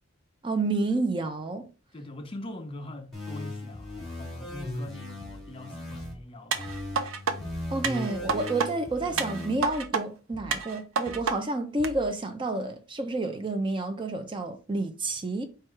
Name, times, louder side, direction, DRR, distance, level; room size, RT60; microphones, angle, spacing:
voice 1, 0.4-1.7 7.7-15.5, right 2 dB, 25° right, 0.5 m, -30 dB
voice 2, 1.9-6.6, left 1 dB, 25° left, 0.5 m, -42 dB
sound 1, 3.1-6.1 6.5-9.5, left 1 dB, ahead, 2.0 m, -38 dB
sound 2, 3.7-4.1 4.4-4.8 5.2-5.6 5.9-6.3 6.6-7.0 7.4-7.7 8.1-8.5 8.8-9.2 9.6-9.9 10.3-10.7 11.0-11.4 11.8-12.2, equal, 60° right, 1.1 m, -47 dB
sound 3, 6.5-7.4 7.8-8.7 9.2-10.0 10.5-11.4 11.8-11.9, right 5 dB, 80° right, 0.6 m, -29 dB
4.6 x 2.3 x 4.5 m
head